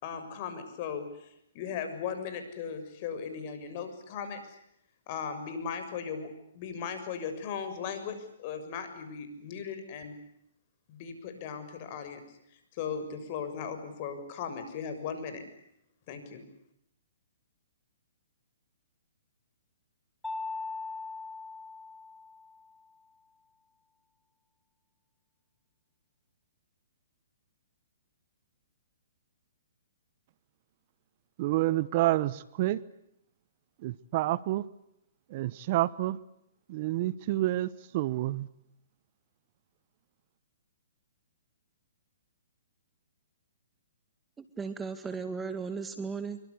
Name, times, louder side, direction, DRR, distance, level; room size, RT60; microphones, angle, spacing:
voice 1, 0.0-1.3 1.5-4.6 5.1-10.2 10.9-12.2 12.7-15.4 16.1-16.4, left 6 dB, 40° left, 6.8 m, -37 dB
Mallet percussion, 20.2-22.8, left 3 dB, 5° left, 1.5 m, -40 dB
voice 2, 31.4-32.8 33.8-34.6 35.3-36.2 36.7-38.5, right 16 dB, 45° right, 1.0 m, -28 dB
voice 3, 44.4-46.4, right 5 dB, 10° right, 2.0 m, -36 dB
26.0 x 24.0 x 8.4 m
hypercardioid pair, 135°, 0 cm